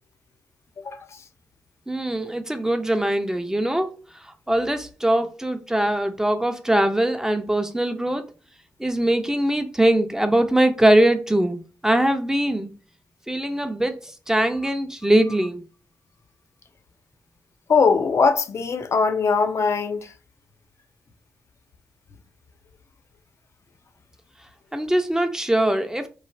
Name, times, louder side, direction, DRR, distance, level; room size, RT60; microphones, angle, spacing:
voice 1, 1.9-8.2 8.8-12.7 13.3-15.6 24.7-26.1, right 1 dB, 10° right, 0.5 m, -22 dB
voice 2, 17.7-20.1, left 5 dB, 55° left, 0.5 m, -20 dB
3.1 x 2.1 x 2.6 m
supercardioid pair, 45°, 6 cm